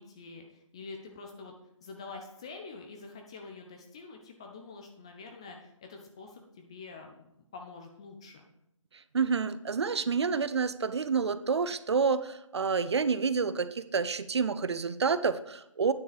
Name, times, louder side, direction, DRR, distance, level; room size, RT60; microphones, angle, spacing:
voice 1, 0.0-1.5 1.8-8.5, left 4 dB, 10° left, 3 dB, 0.4 m, -46 dB
voice 2, 9.1-15.9, right 5 dB, 55° right, 13 dB, 0.6 m, -28 dB
9.3 x 5.5 x 5.0 m, 0.78 s
figure-of-eight pair, 155°, 17 cm